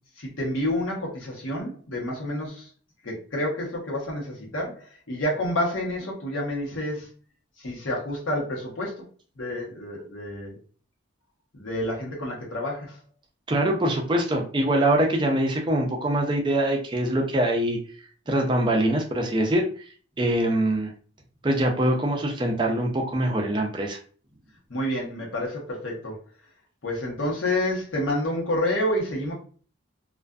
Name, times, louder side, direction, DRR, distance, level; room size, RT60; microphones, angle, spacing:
voice 1, 0.2-2.7 3.0-7.1 7.6-9.0 9.4-10.6 11.5-13.0 24.7-26.2 26.8-29.3, left 1 dB, 85° left, -2 dB, 1.0 m, -29 dB
voice 2, 13.5-17.8 18.3-19.6 20.2-20.9 21.4-24.0, right 1 dB, 25° right, 1 dB, 0.4 m, -23 dB
2.4 x 2.4 x 2.2 m, 0.41 s
head